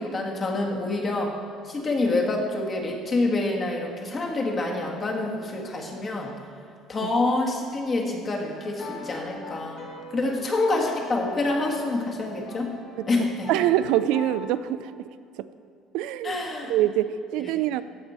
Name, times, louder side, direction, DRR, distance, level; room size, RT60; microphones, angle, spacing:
voice 1, 0.0-1.4 1.6-6.3 6.9-12.7 13.1-13.5 16.2-16.7, left 2 dB, 30° left, 0 dB, 1.6 m, -27 dB
sound 1, 8.5-14.6, left 3 dB, 55° left, 1.7 m, -42 dB
voice 2, 13.5-14.9 15.9-16.4 16.7-17.8, right 12 dB, 80° right, 14 dB, 0.3 m, -24 dB
15.5 x 5.3 x 4.3 m, 2.4 s
cardioid pair, 120°, 0 cm